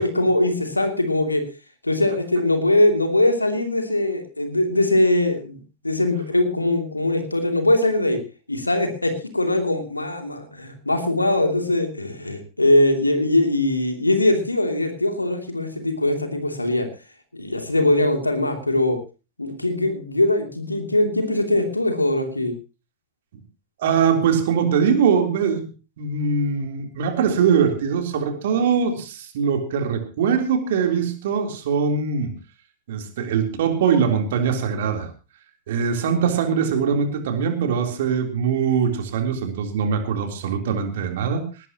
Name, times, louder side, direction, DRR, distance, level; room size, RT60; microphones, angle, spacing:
voice 1, 0.0-1.4 1.8-8.2 8.5-16.9 17.3-19.0 19.4-22.5, left 1 dB, 85° left, 6 dB, 2.8 m, -21 dB
voice 2, 23.8-25.7 26.0-32.3 32.9-35.1 35.7-41.4, right 6 dB, 60° right, 5 dB, 3.5 m, -22 dB
19.0 x 18.5 x 3.0 m, 0.32 s
figure-of-eight pair, 90°, 0 cm